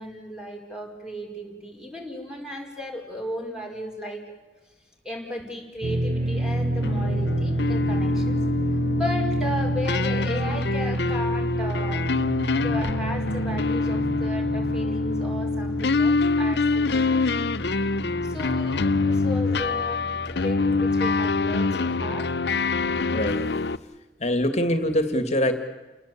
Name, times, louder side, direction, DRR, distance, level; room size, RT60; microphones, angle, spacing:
voice 1, 0.0-4.3 5.0-8.4 8.9-12.2 12.5-17.2 18.2-20.0 20.4-22.3, left 1 dB, 5° right, 1 dB, 5.0 m, -35 dB
sound 1, 5.8-23.5, right 1 dB, 40° right, 1.5 m, -30 dB
sound 2, 6.8-23.8, left 3 dB, 65° left, 0.7 m, -25 dB
voice 2, 23.1-23.5 24.2-25.5, left 1 dB, 40° left, 7 dB, 2.4 m, -23 dB
29.5 x 19.0 x 8.6 m, 1.1 s
head